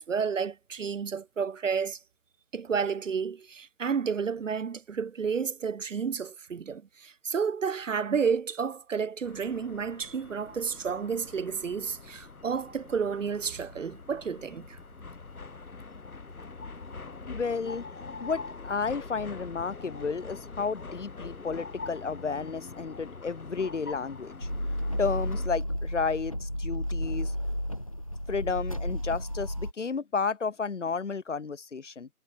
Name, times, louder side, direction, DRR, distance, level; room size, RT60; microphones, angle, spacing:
voice 1, 0.0-2.0 2.5-14.8, right 6 dB, 60° right, 0.8 m, -31 dB
sound 1, 9.2-25.5, left 4 dB, 80° left, 7.9 m, -44 dB
voice 2, 17.3-17.9 18.2-24.5 25.0-27.3 28.3-32.1, left 5 dB, 55° left, 2.5 m, -32 dB
sound 2, 24.4-29.7, equal, 25° left, 0.8 m, -32 dB
hypercardioid pair, 180°, 43 cm